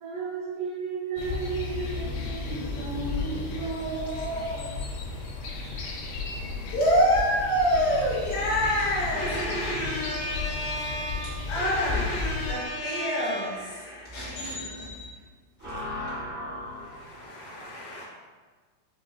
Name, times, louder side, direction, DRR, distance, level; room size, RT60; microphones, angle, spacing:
voice 1, 0.0-4.7 5.8-6.0 7.4-8.2, right 4 dB, 75° right, -10 dB, 1.8 m, -34 dB
sound 1, 1.2-12.5, left 4 dB, 85° left, 2.0 m, -34 dB
voice 2, 6.7-15.1 16.9-18.0, equal, 60° left, -10 dB, 2.2 m, -27 dB
voice 3, 15.6-17.5, left 1 dB, 40° right, -11 dB, 0.7 m, -37 dB
5.8 x 2.3 x 2.4 m, 1.4 s
omnidirectional pair, 3.4 m